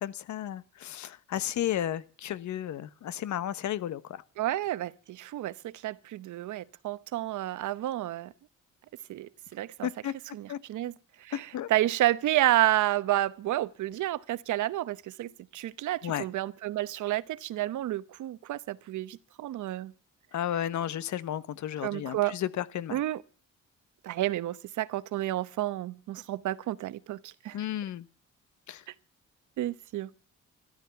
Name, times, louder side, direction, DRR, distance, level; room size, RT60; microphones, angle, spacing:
voice 1, 0.0-4.2 9.8-10.1 10.5-10.6 11.3-11.7 16.0-16.3 20.3-23.0 27.5-28.1 28.7-28.8, left 11 dB, 70° left, 1.2 m, -33 dB
voice 2, 4.4-8.3 9.1-9.9 10.3-10.9 11.2-19.9 21.8-22.4 22.9-23.2 24.0-27.6 29.6-30.1, right 14 dB, 75° right, 1.0 m, -30 dB
13.5 x 12.5 x 6.9 m
cardioid pair, 90°, 30 cm